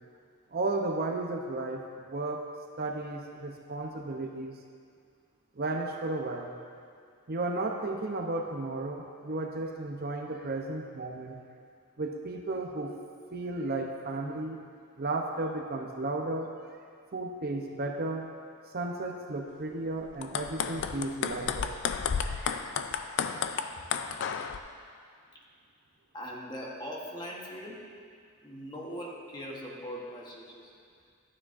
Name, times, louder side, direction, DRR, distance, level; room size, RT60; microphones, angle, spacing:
voice 1, 0.5-2.4 2.8-4.6 5.6-6.5 7.3-11.4 12.0-12.9 13.3-14.6 15.0-16.5 17.1-18.3 18.7-21.7 22.2-22.6, right 2 dB, 45° right, 2 dB, 0.6 m, -34 dB
sound 1, 20.1-24.6, left 7 dB, 55° left, 0.4 m, -32 dB
voice 2, 26.1-27.8 28.4-30.7, equal, 20° left, -3 dB, 1.0 m, -40 dB
12.0 x 9.5 x 2.5 m, 2.2 s
head